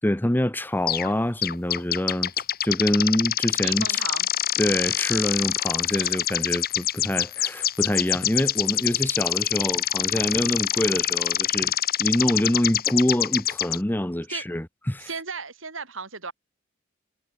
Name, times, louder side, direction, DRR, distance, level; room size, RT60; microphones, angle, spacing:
voice 1, 0.0-2.3 2.6-4.0 4.6-11.7 12.0-15.1, left 1 dB, 10° left, 0.9 m, -25 dB
sound 1, 0.9-1.1 1.4-13.8, left 11 dB, 50° left, 2.5 m, -25 dB
voice 2, 3.6-4.3 5.9-6.2 14.3-14.4 15.0-16.3, right 5 dB, 85° right, 4.8 m, -35 dB
head